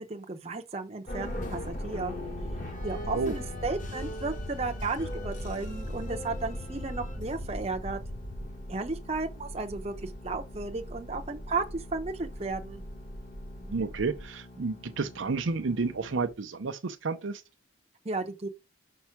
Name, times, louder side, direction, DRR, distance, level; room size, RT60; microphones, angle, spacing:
voice 1, 0.0-2.1 2.8-8.0 8.7-12.8 18.0-18.5, right 3 dB, 30° right, 0.8 m, -34 dB
sound 1, 1.1-16.3, left 1 dB, 40° left, 1.4 m, -39 dB
voice 2, 13.7-17.4, right 4 dB, 65° right, 0.6 m, -31 dB
5.3 x 4.5 x 5.9 m
head